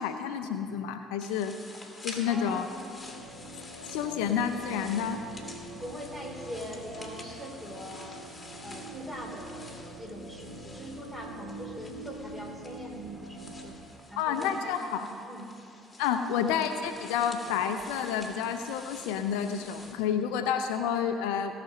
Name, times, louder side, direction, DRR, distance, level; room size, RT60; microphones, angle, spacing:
voice 1, 0.0-1.6 2.0-2.7 3.9-5.2 14.2-15.1 16.0-21.5, left 8 dB, 75° left, 8 dB, 0.6 m, -29 dB
sound 1, 1.2-19.9, left 2 dB, 20° left, 2.3 m, -48 dB
voice 2, 2.3-2.9 5.8-8.2 8.6-13.8 14.1-15.4 16.3-16.5, equal, 10° right, 0 dB, 3.5 m, -42 dB
sound 2, 2.3-13.7, right 2 dB, 90° right, 2.0 m, -45 dB
17.0 x 6.0 x 6.5 m, 2.7 s
hypercardioid pair, 55°, 0 cm